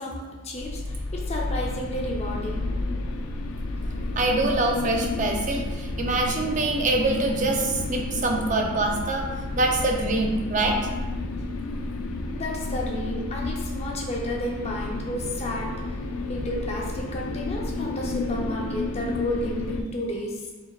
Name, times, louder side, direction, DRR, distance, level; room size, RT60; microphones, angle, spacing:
voice 1, 0.0-2.7 12.3-20.5, left 1 dB, 30° left, -2 dB, 0.6 m, -32 dB
sound 1, 0.6-19.8, left 2 dB, 90° left, 0.4 m, -31 dB
voice 2, 4.1-10.8 11.1-11.3, right 2 dB, 35° right, 2 dB, 0.4 m, -25 dB
4.6 x 3.3 x 2.4 m, 1.2 s
head